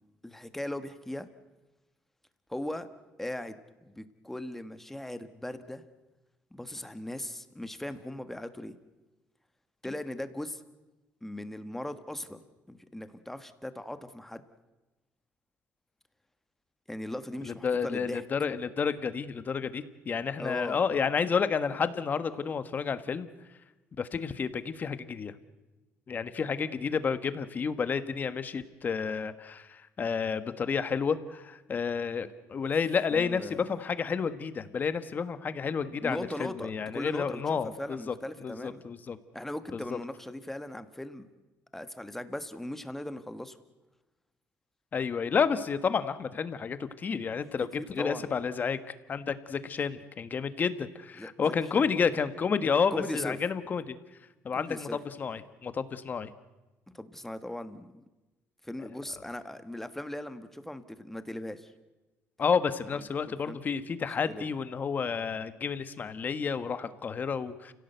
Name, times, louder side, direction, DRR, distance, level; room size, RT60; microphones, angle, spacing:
voice 1, 0.2-1.3 2.5-2.9 3.2-5.8 6.5-8.7 9.8-10.6 11.2-12.4 12.7-14.4 16.9-18.2 20.4-20.8 33.1-33.6 36.0-38.8 39.3-41.3 41.7-43.6 47.8-48.2 51.2-51.3 51.7-52.0 52.9-53.4 54.5-55.0 56.9-58.0 58.6-61.7 62.9-63.0 63.4-63.6 64.3-64.5, left 1 dB, 5° left, 10 dB, 1.4 m, -38 dB
voice 2, 17.4-23.3 24.0-25.3 26.1-39.2 39.7-40.0 44.9-48.8 49.1-54.0 54.4-56.3 62.4-67.7, left 6 dB, 35° left, 12 dB, 1.4 m, -30 dB
30.0 x 17.0 x 8.0 m, 1.1 s
cardioid pair, 130°, 5 cm